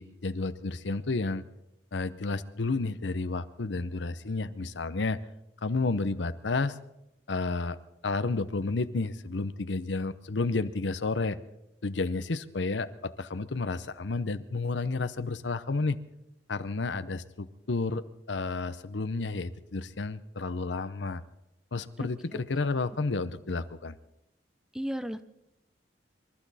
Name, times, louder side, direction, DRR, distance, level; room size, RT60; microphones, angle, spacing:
voice 1, 0.0-1.4 1.9-5.2 5.6-6.8 7.3-7.8 8.0-11.4 11.8-16.0 16.5-21.2 21.7-24.0, left 3 dB, 90° left, 13 dB, 0.8 m, -31 dB
voice 2, 22.0-22.4 24.7-25.2, equal, 5° right, 12 dB, 0.6 m, -35 dB
26.5 x 12.5 x 4.2 m, 0.86 s
head